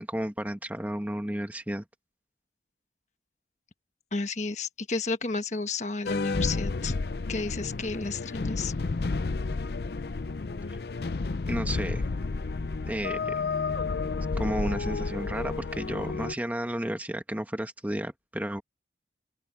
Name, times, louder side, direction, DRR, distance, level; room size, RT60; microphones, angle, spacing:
voice 1, 0.0-1.8 10.7-10.8 11.5-12.0 12.8-13.3 14.3-18.6, right 1 dB, 10° right, 1.2 m, -32 dB
voice 2, 4.1-6.9 7.3-8.7, left 3 dB, 40° left, 1.4 m, -32 dB
sound 1, 6.1-16.3, left 3 dB, 65° left, 0.6 m, -31 dB
open air
head